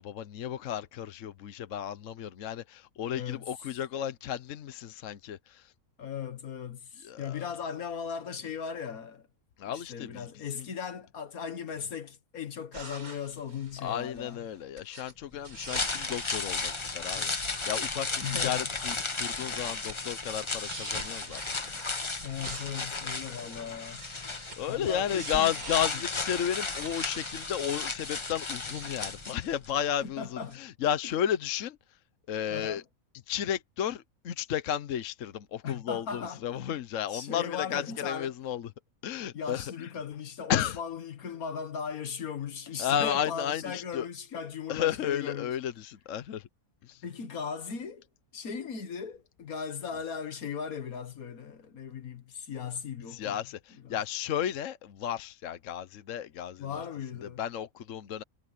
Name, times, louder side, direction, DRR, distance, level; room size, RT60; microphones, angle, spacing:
voice 1, 0.0-5.7 7.0-7.5 9.6-10.7 13.8-21.7 23.5-23.7 24.6-31.8 32.3-32.8 33.3-38.7 39.0-39.9 40.5-40.8 42.8-44.1 44.7-46.4 46.9-47.0 53.1-56.8 57.2-58.2, left 9 dB, 65° left, 1.1 m, -33 dB
voice 2, 3.1-3.5 6.0-9.2 9.7-14.4 18.2-18.7 22.2-24.1 24.6-25.5 30.0-30.6 32.5-32.8 35.6-36.4 37.1-38.4 39.3-45.5 47.0-48.1 48.3-53.4 53.8-54.0 56.6-57.4, left 7 dB, 80° left, 1.9 m, -38 dB
sound 1, 12.7-14.4 14.8-15.1 15.4-18.8 19.0-19.9 20.2-24.6 24.9-27.9 28.3-28.9 29.2-29.8 30.4-30.6, right 3 dB, 85° right, 4.8 m, -46 dB
sound 2, 15.5-29.7 30.0-30.1, left 3 dB, 25° left, 1.0 m, -35 dB
omnidirectional pair, 1.5 m